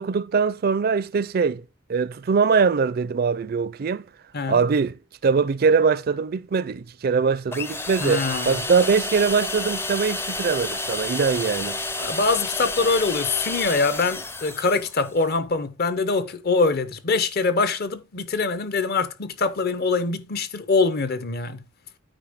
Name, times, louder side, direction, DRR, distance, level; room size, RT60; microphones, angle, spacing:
voice 1, 0.0-1.6 1.9-4.0 4.5-11.8, right 5 dB, 50° right, 0.4 m, -22 dB
sound 1, 7.5-15.1, left 2 dB, 10° left, 0.5 m, -30 dB
voice 2, 8.0-8.6 12.0-21.6, left 4 dB, 50° left, 0.7 m, -24 dB
9.0 x 4.5 x 3.5 m
head